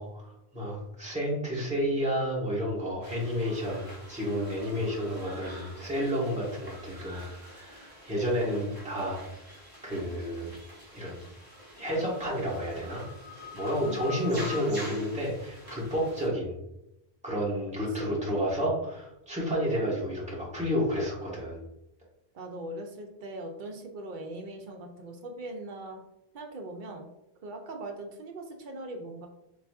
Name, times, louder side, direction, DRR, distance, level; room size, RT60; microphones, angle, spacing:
voice 1, 0.0-9.2 9.8-10.5 10.9-11.2 11.8-13.0 13.5-16.5 17.2-21.6, equal, 5° right, -7 dB, 1.2 m, -31 dB
sound 1, 3.0-16.3, left 1 dB, 20° right, 1.0 m, -46 dB
voice 2, 13.8-14.2 18.0-18.3 22.3-26.0 26.3-27.1 27.4-29.3, right 2 dB, 55° right, 2 dB, 0.7 m, -40 dB
3.9 x 3.1 x 2.4 m, 0.85 s
omnidirectional pair, 1.1 m